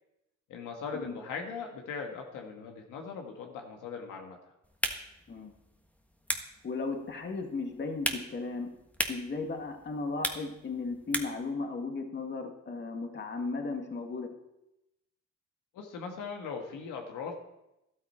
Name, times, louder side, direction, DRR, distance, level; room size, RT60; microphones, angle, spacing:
voice 1, 0.5-4.4 15.7-17.3, left 5 dB, 90° left, 2 dB, 1.9 m, -39 dB
sound 1, 4.6-11.5, equal, 5° left, 1.4 m, -38 dB
voice 2, 6.6-8.7 9.1-14.4, left 3 dB, 35° left, 4 dB, 1.8 m, -36 dB
13.0 x 12.5 x 4.4 m, 0.89 s
cardioid pair, 90°, 30 cm